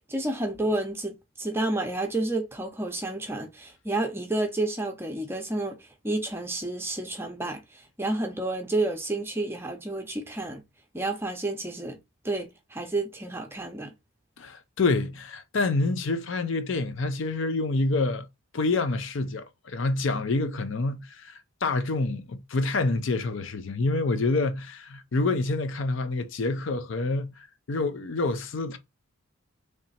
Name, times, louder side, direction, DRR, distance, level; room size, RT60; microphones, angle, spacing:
voice 1, 0.0-5.8 6.0-10.6 10.9-12.0 12.2-13.9, right 2 dB, 10° right, 0.6 m, -30 dB
voice 2, 14.4-18.3 18.5-28.8, left 3 dB, 60° left, 0.5 m, -27 dB
3.2 x 2.9 x 4.0 m
head